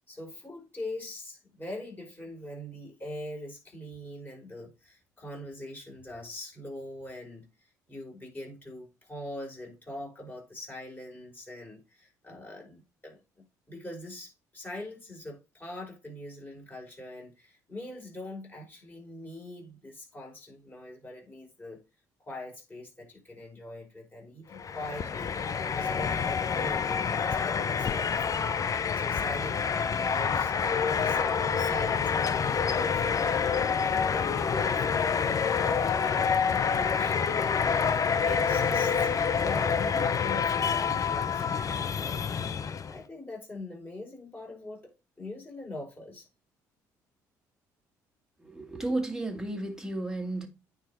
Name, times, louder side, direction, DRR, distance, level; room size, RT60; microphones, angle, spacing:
voice 1, 0.0-21.8 22.2-25.3 25.7-30.6 30.9-33.4 33.8-42.5 42.9-44.9 45.2-46.3, left 1 dB, 20° left, 5.5 m, -43 dB
sound 1, 24.5-43.0, left 6 dB, 40° left, 0.7 m, -27 dB
voice 2, 48.4-50.5, right 2 dB, 5° right, 2.1 m, -33 dB
9.1 x 4.1 x 4.4 m
hypercardioid pair, 60°, 9 cm